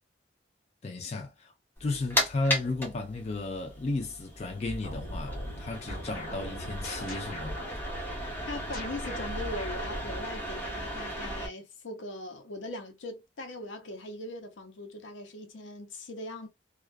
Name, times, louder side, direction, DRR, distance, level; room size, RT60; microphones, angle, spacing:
voice 1, 0.8-1.5 1.8-7.6, left 2 dB, 35° left, 0.4 m, -34 dB
sound 1, 1.8-11.5, equal, 10° left, 0.9 m, -36 dB
sound 2, 4.7-10.9, equal, 50° left, 1.3 m, -40 dB
voice 2, 8.5-16.5, left 2 dB, 85° left, 0.7 m, -40 dB
2.3 x 2.3 x 2.3 m
head